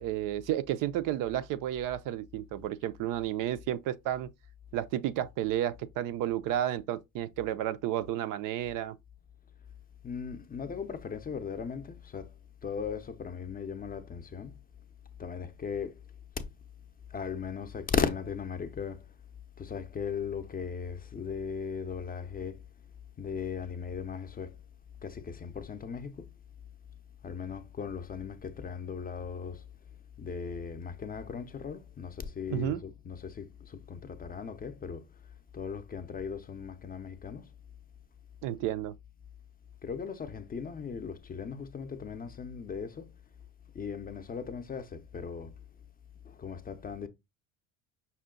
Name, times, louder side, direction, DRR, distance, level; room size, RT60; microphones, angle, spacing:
voice 1, 0.0-4.3 4.7-9.0 32.5-32.8 38.4-38.9, right 12 dB, 55° right, 0.4 m, -32 dB
voice 2, 10.0-12.3 12.6-14.6 15.2-16.0 17.1-19.1 19.6-22.6 23.2-24.6 25.0-26.3 27.2-29.6 30.2-35.1 35.5-37.5 39.8-43.1 43.7-45.5 46.2-47.1, left 6 dB, 20° left, 0.5 m, -37 dB
5.6 x 2.1 x 3.7 m
supercardioid pair, 95°, 40 cm